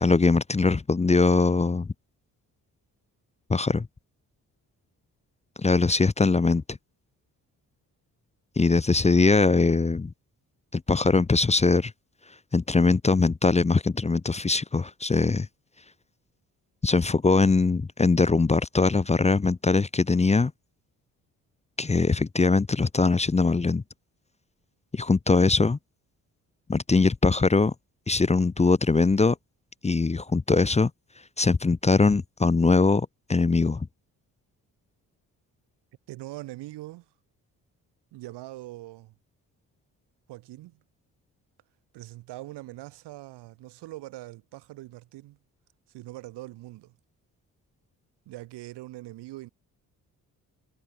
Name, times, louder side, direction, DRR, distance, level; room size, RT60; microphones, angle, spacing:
voice 1, 0.0-1.9 3.5-3.9 5.6-6.8 8.6-10.1 10.7-11.9 12.5-15.5 16.8-20.5 21.8-23.8 24.9-25.8 26.7-27.7 28.1-29.4 29.8-30.9 31.4-33.9, left 3 dB, 15° left, 0.6 m, -22 dB
voice 2, 36.1-37.1 38.1-39.1 40.3-40.8 41.9-45.4 45.9-46.9 48.3-49.5, right 17 dB, 85° right, 3.0 m, -42 dB
supercardioid pair, 50°, 40 cm